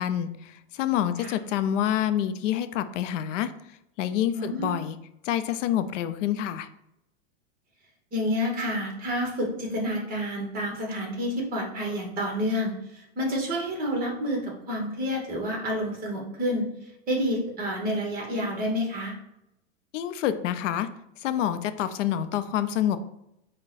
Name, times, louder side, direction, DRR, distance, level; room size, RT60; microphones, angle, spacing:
voice 1, 0.0-3.5 4.0-5.0 5.2-6.7 19.9-20.9 21.2-23.0, left 11 dB, 70° left, 11 dB, 0.5 m, -27 dB
voice 2, 4.3-4.7 8.1-19.2, equal, 25° right, 0 dB, 1.0 m, -29 dB
4.6 x 2.2 x 4.0 m, 0.84 s
supercardioid pair, 145°, 38 cm